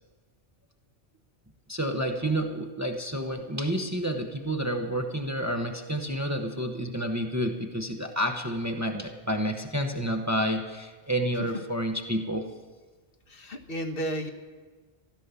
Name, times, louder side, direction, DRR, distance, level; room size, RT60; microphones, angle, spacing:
voice 1, 1.7-12.5, equal, 15° right, 4 dB, 0.9 m, -29 dB
voice 2, 13.3-14.3, right 1 dB, 60° left, 5 dB, 1.4 m, -33 dB
15.0 x 12.0 x 6.9 m, 1.4 s
omnidirectional pair, 1.1 m